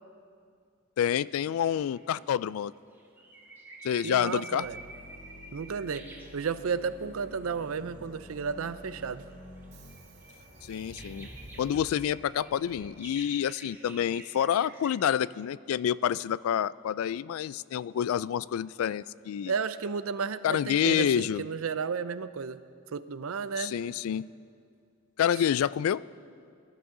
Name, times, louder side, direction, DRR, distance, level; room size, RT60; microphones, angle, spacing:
voice 1, 1.0-2.7 3.8-4.7 10.7-11.3 11.6-19.5 20.4-21.4 23.6-24.3 25.2-26.0, left 9 dB, 85° left, 18 dB, 0.3 m, -28 dB
sound 1, 1.2-2.1 2.7-6.9 7.3-7.9 8.7-14.9, right 2 dB, 10° right, 1.2 m, -50 dB
voice 2, 4.0-4.8 5.5-9.2 19.5-22.6 22.9-23.7, right 5 dB, 80° right, 14 dB, 0.5 m, -33 dB
sound 2, 4.6-10.0, left 1 dB, 40° left, 1.5 m, -49 dB
Subway metro underground, 6.2-13.6, right 1 dB, 50° right, 2.5 m, -53 dB
20.5 x 12.5 x 3.8 m, 2.3 s
head